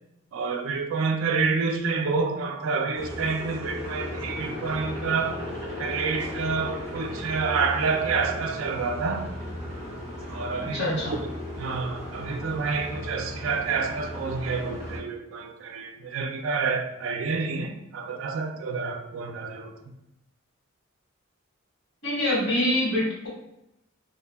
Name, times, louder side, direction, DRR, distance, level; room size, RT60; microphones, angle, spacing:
voice 1, 0.3-5.4 5.8-9.3 10.3-11.0 11.6-19.7, right 4 dB, 80° right, 5 dB, 0.3 m, -28 dB
sound 1, 2.9-15.0, left 1 dB, 10° left, 1.4 m, -36 dB
voice 2, 10.6-11.1 22.0-23.3, left 1 dB, 75° left, -7 dB, 1.4 m, -25 dB
2.7 x 2.6 x 2.2 m, 0.85 s
head